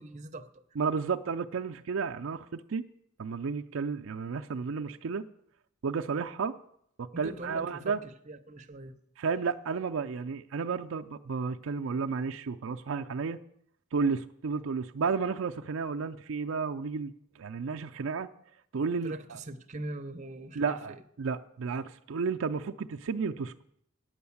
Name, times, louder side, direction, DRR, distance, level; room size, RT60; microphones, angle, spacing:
voice 1, 0.0-0.6 7.1-8.9 19.0-21.0, right 2 dB, 35° right, 7 dB, 0.7 m, -42 dB
voice 2, 0.8-2.8 3.2-5.2 5.8-6.6 7.0-8.0 9.2-13.4 13.9-18.3 18.7-19.4 20.6-23.5, right 5 dB, 80° right, 6 dB, 0.5 m, -32 dB
9.4 x 8.8 x 7.1 m, 0.71 s
head